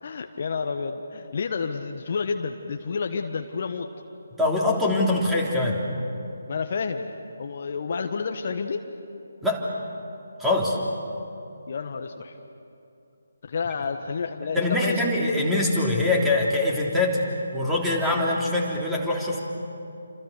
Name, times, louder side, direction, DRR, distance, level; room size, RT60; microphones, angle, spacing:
voice 1, 0.0-3.9 6.5-7.1 7.4-8.8 11.7-12.4 13.4-15.0, left 5 dB, 45° left, 5 dB, 1.4 m, -30 dB
voice 2, 4.4-5.8 9.4-9.6 10.4-10.8 14.5-17.2 17.5-19.4, left 2 dB, 5° right, -3 dB, 3.6 m, -23 dB
29.5 x 27.0 x 7.0 m, 2.7 s
figure-of-eight pair, 150°, 0 cm